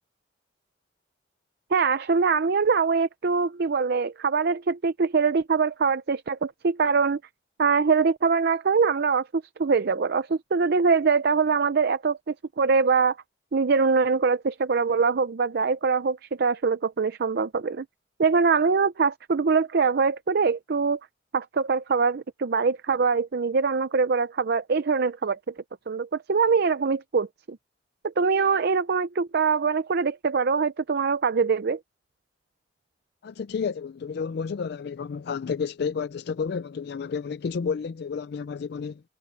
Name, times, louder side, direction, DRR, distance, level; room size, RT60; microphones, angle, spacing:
voice 1, 1.7-7.2 7.6-13.2 13.5-17.9 18.2-21.0 21.3-25.4 25.9-27.6 28.0-31.8, right 5 dB, 55° right, 0.5 m, -23 dB
voice 2, 33.2-39.0, left 6 dB, 60° left, 0.4 m, -31 dB
head